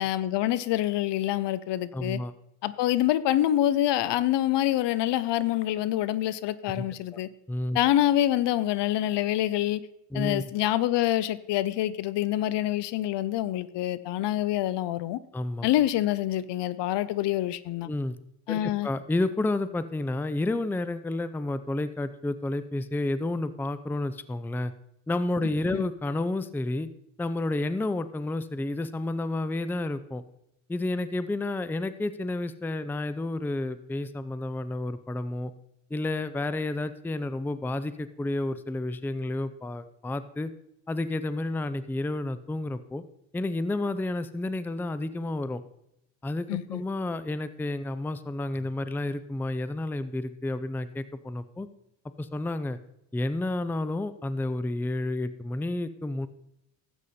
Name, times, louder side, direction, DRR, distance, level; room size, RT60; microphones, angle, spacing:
voice 1, 0.0-2.2 2.6-7.3 7.7-9.8 10.1-15.2 15.6-17.9 18.5-18.9 25.7-25.8 46.5-46.8, left 13 dB, 65° left, 0.7 m, -26 dB
voice 2, 1.9-2.3 6.8-6.9 7.5-7.8 10.1-10.4 15.3-15.7 17.8-18.2 18.5-24.7 25.1-26.9 27.2-30.2 30.7-35.5 35.9-40.5 40.9-43.0 43.3-45.6 46.2-51.7 52.2-52.8 53.1-56.3, left 2 dB, 5° left, 0.5 m, -30 dB
12.5 x 8.2 x 4.3 m
supercardioid pair, 80°, 47 cm